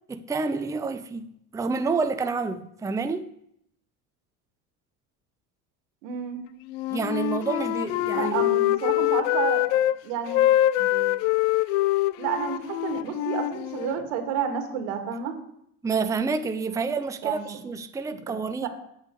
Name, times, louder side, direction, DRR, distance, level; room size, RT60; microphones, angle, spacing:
voice 1, 0.1-1.3 1.5-3.3 6.9-8.5 10.8-11.2 15.8-18.7, right 4 dB, 10° right, 0.5 m, -29 dB
voice 2, 6.0-6.5 8.1-9.7 10.0-10.4 12.2-15.4 17.2-17.6 18.1-18.7, right 8 dB, 90° right, 2.0 m, -30 dB
Wind instrument woodwind instrument, 6.7-10.0 10.3-14.0, left 14 dB, 90° left, 0.5 m, -24 dB
8.2 x 6.4 x 8.3 m
supercardioid pair, 115°, 37 cm